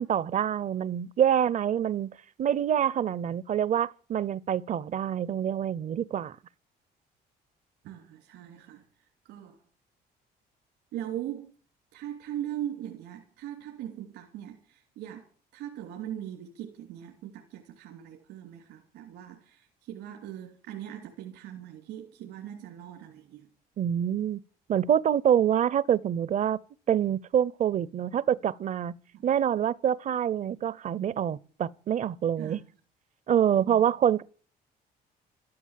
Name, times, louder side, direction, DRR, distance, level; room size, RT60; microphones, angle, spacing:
voice 1, 0.0-2.1 2.4-6.4 23.8-24.4 24.7-26.6 26.9-29.0 29.2-32.6 33.3-34.2, right 9 dB, 45° right, 0.7 m, -26 dB
voice 2, 7.8-9.6 10.9-11.5 11.9-23.5 29.1-29.3 32.4-32.7 33.6-33.9, right 11 dB, 90° right, 3.2 m, -40 dB
13.5 x 13.0 x 7.5 m
cardioid pair, 110°, 17 cm